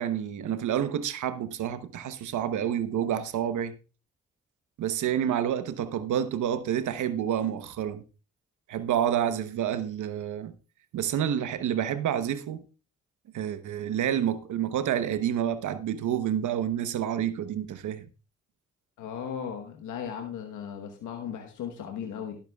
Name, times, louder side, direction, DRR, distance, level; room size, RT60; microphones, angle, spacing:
voice 1, 0.0-3.7 4.8-8.0 8.7-10.5 10.9-12.6 13.3-18.1, right 10 dB, 80° right, 1.0 m, -29 dB
voice 2, 19.0-22.4, left 8 dB, 90° left, 1.2 m, -36 dB
17.0 x 8.8 x 2.3 m
supercardioid pair, 45°, 30 cm